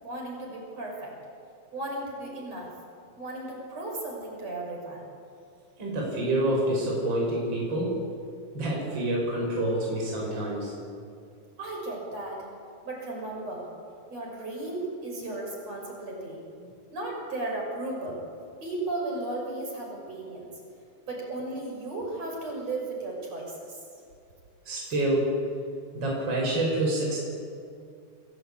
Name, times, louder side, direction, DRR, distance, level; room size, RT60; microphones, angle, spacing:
voice 1, 0.0-1.2 1.7-2.7 3.2-5.1 11.6-12.5 12.8-13.7 14.1-16.4 16.9-18.2 18.6-20.5 21.1-23.8, right 2 dB, 50° right, -1 dB, 7.2 m, -35 dB
voice 2, 5.8-8.1 8.5-10.7 24.6-25.4 25.9-27.2, right 1 dB, 35° right, -3 dB, 6.2 m, -27 dB
29.0 x 20.0 x 8.8 m, 2.5 s
omnidirectional pair, 3.8 m